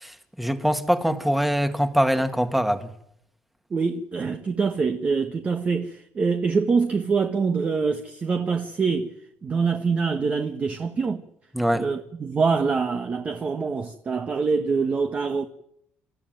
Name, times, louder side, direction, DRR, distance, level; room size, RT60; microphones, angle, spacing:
voice 1, 0.0-2.9 11.5-11.8, equal, 5° right, 1.9 m, -23 dB
voice 2, 3.7-9.1 9.4-11.2 11.7-15.5, right 5 dB, 30° right, 1.6 m, -25 dB
29.0 x 14.0 x 9.3 m
cardioid pair, 125°, 4 cm